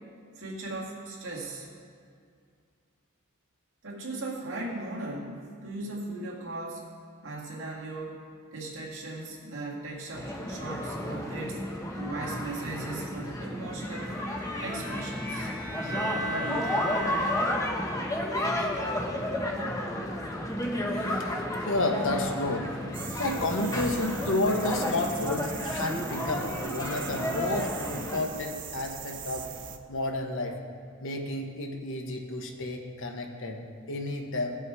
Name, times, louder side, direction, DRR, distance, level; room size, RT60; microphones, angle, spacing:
voice 1, 0.4-1.7 3.8-6.9 7.2-8.2 8.5-11.6 11.9-14.2 14.6-15.5 16.2-17.0, right 2 dB, 65° right, -3 dB, 2.0 m, -38 dB
sound 1, 10.1-28.2, left 1 dB, 15° left, 1.0 m, -32 dB
Bowed string instrument, 13.9-18.1, right 1 dB, 20° right, 1.4 m, -37 dB
voice 2, 20.9-22.7 23.0-29.5 29.9-30.6 31.0-33.6 33.9-34.6, left 2 dB, 65° left, 3 dB, 1.1 m, -31 dB
sound 2, 22.9-29.8, right 7 dB, 40° right, 0.5 m, -41 dB
15.5 x 5.7 x 4.8 m, 2.2 s
head